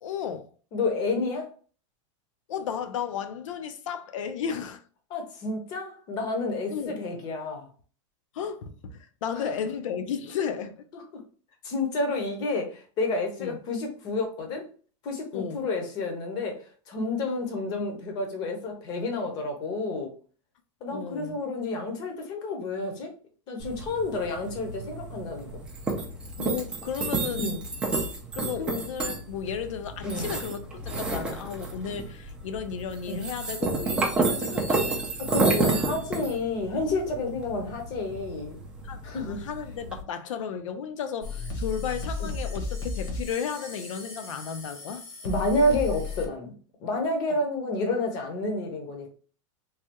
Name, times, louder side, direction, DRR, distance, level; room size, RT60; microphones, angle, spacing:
voice 1, 0.0-0.5 2.5-4.8 6.7-6.9 8.3-10.7 13.4-13.6 15.3-15.6 20.9-21.4 26.4-27.5 28.3-35.0 38.8-45.0 47.3-47.4, left 7 dB, 80° left, 0.5 m, -34 dB
voice 2, 0.7-1.5 5.1-7.7 11.6-14.6 15.0-16.6 16.9-20.1 20.8-23.1 23.5-25.6 27.3-27.6 30.0-30.3 33.1-33.2 35.2-38.6 39.0-39.4 42.2-42.3 45.2-46.5 46.8-49.1, left 2 dB, 25° left, 0.7 m, -29 dB
sound 1, 23.6-40.0, right 3 dB, 5° right, 0.3 m, -31 dB
sound 2, 41.2-46.3, left 3 dB, 45° left, 0.9 m, -34 dB
3.3 x 2.2 x 2.9 m
supercardioid pair, 175°, 16 cm